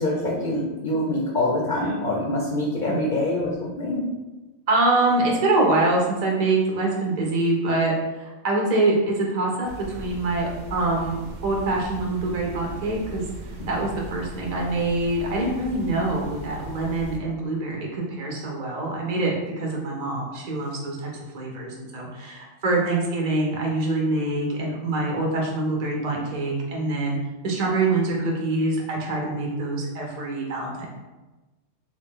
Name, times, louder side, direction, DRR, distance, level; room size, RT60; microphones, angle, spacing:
voice 1, 0.0-4.0, left 1 dB, 55° left, -2 dB, 0.6 m, -25 dB
voice 2, 4.7-13.2 13.7-27.2 27.4-30.9, right 2 dB, 45° right, -2 dB, 0.7 m, -25 dB
sound 1, 9.6-17.2, right 2 dB, 85° right, 0.9 m, -39 dB
3.4 x 2.5 x 3.6 m, 1.1 s
omnidirectional pair, 1.2 m